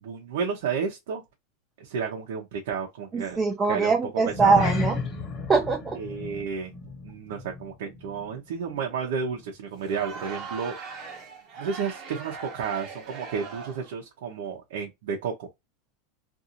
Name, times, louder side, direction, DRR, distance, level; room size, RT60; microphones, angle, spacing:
voice 1, 0.0-1.2 1.8-3.4 3.7-3.9 4.4-4.6 6.0-6.7 7.0-10.8 11.6-15.5, right 6 dB, 80° right, 0.8 m, -31 dB
voice 2, 3.1-5.1 5.5-6.0, right 4 dB, 15° right, 0.5 m, -23 dB
sound 1, 4.2-8.9 9.1-9.4 9.9-10.0, left 3 dB, 25° left, 1.1 m, -33 dB
Crowd, 9.8-14.0, right 5 dB, 35° right, 0.9 m, -40 dB
2.6 x 2.6 x 2.7 m
supercardioid pair, 160°, 0 cm